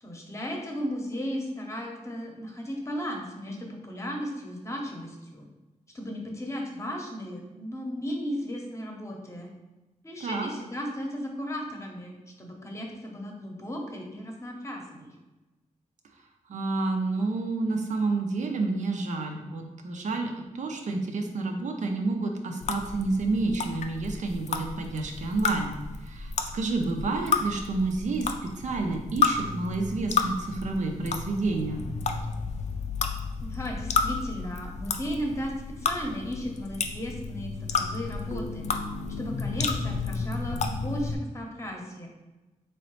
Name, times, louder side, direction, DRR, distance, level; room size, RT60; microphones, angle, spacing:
voice 1, 0.0-5.5 5.9-9.5 10.0-15.1 33.4-38.7 39.2-42.1, equal, 20° left, 1 dB, 0.8 m, -35 dB
voice 2, 16.5-25.7 26.0-31.8, right 3 dB, 70° right, 3 dB, 0.6 m, -29 dB
sound 1, 22.6-41.1, left 5 dB, 65° left, 0.4 m, -31 dB
3.8 x 3.0 x 3.1 m, 1.1 s
cardioid pair, 90°, 13 cm